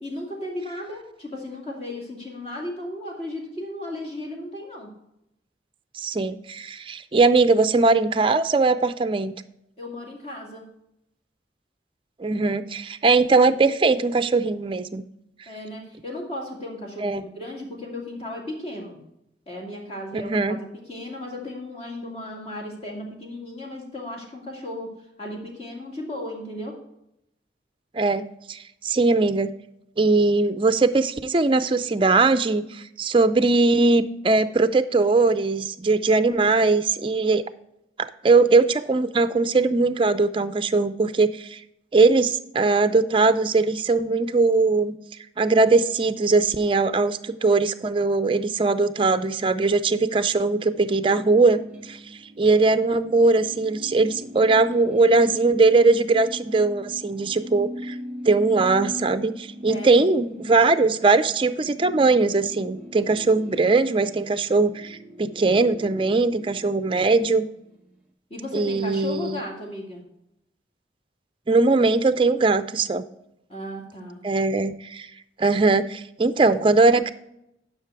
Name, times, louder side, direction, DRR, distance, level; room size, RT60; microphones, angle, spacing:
voice 1, 0.0-4.9 9.8-10.7 15.5-19.0 19.5-26.8 59.7-60.0 68.3-70.0 73.5-74.2, left 1 dB, 35° left, 0 dB, 2.3 m, -35 dB
voice 2, 5.9-9.3 12.2-15.0 17.0-17.2 20.1-20.6 27.9-28.6 28.8-29.5 30.0-37.4 38.2-41.6 41.9-45.0 45.4-52.0 52.4-57.9 58.3-67.5 68.5-69.4 71.5-73.0 74.2-75.1 75.4-77.1, right 3 dB, 30° right, 12 dB, 0.4 m, -20 dB
sound 1, 50.7-67.9, left 1 dB, 5° right, 1.5 m, -41 dB
11.0 x 5.8 x 4.6 m, 0.82 s
head